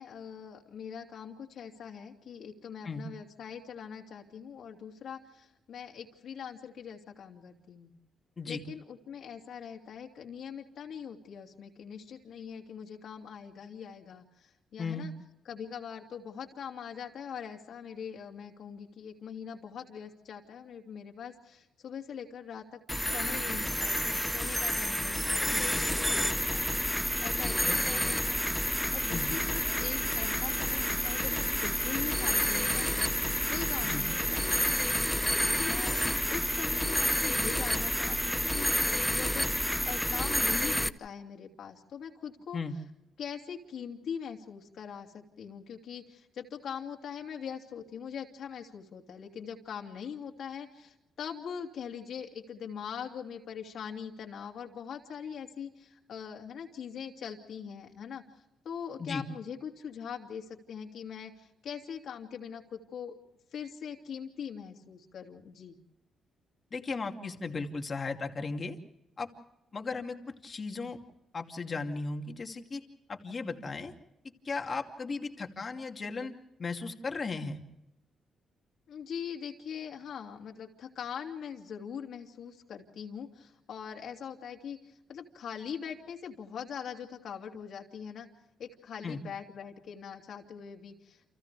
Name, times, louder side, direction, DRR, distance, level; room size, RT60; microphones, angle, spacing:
voice 1, 0.0-7.9 8.4-15.1 15.4-35.2 35.6-36.0 36.3-42.6 43.2-63.2 63.5-65.8 78.9-88.3 88.6-91.3, left 7 dB, 65° left, 1 dB, 2.8 m, -42 dB
voice 2, 14.8-15.1 27.4-27.8 29.1-29.3 33.8-34.0 42.5-42.7 59.0-59.2 66.7-68.8 69.2-69.3 69.7-71.0 71.3-72.8 73.1-73.9 74.4-77.6 89.0-89.2, left 4 dB, 35° left, 4 dB, 2.5 m, -36 dB
sound 1, 22.9-40.9, equal, ahead, 0.7 m, -29 dB
30.0 x 28.0 x 3.5 m, 0.90 s
cardioid pair, 120°, 0 cm